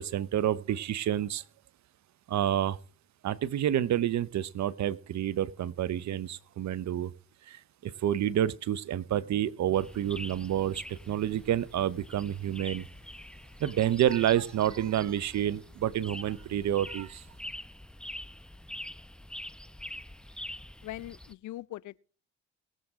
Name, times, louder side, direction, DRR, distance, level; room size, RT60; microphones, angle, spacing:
voice 1, 0.0-1.4 2.3-2.8 3.2-7.1 7.5-7.6 7.8-12.8 13.6-17.2, right 11 dB, 65° right, 0.9 m, -29 dB
sound 1, 9.7-21.3, left 1 dB, 5° left, 0.8 m, -45 dB
voice 2, 20.8-22.0, left 15 dB, 70° left, 0.6 m, -41 dB
21.0 x 7.7 x 3.7 m
hypercardioid pair, 50°, 31 cm